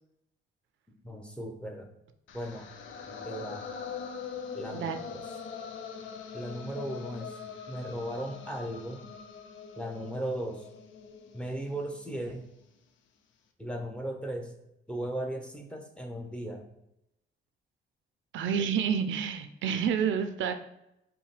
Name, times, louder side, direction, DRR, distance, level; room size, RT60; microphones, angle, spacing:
voice 1, 1.0-1.9 2.3-2.7 3.1-3.6 4.5-5.2 6.3-7.4 7.7-9.1 9.8-10.6 11.3-12.4 13.6-14.5 14.9-16.7, right 1 dB, 5° left, 2 dB, 0.8 m, -37 dB
sound 1, 2.3-12.3, left 6 dB, 70° left, 0.6 m, -43 dB
voice 2, 18.3-20.5, right 7 dB, 75° right, 9 dB, 0.4 m, -29 dB
5.4 x 2.2 x 3.2 m, 0.84 s
cardioid pair, 90°, 20 cm